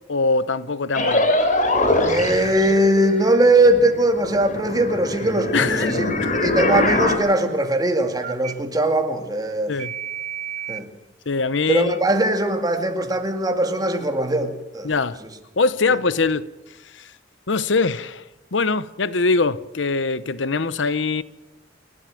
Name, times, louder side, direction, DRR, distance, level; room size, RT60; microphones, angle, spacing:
voice 1, 0.1-1.3 5.5-6.0 6.2-6.3 9.7-9.9 11.3-11.9 14.8-15.2 15.6-16.5 16.9-17.1 17.5-18.2 18.5-21.2, left 4 dB, 85° left, 0.9 m, -22 dB
sound 1, 0.9-3.4 3.6-7.2, left 2 dB, 45° left, 3.5 m, -23 dB
Telephone, 1.8-2.3 5.3-5.8 6.7-7.0 8.2-8.5 9.8-10.8, right 6 dB, 40° right, 1.4 m, -31 dB
voice 2, 2.1-9.7 10.7-10.9 11.7-15.0, right 1 dB, 20° right, 2.4 m, -20 dB
28.5 x 12.5 x 7.7 m
head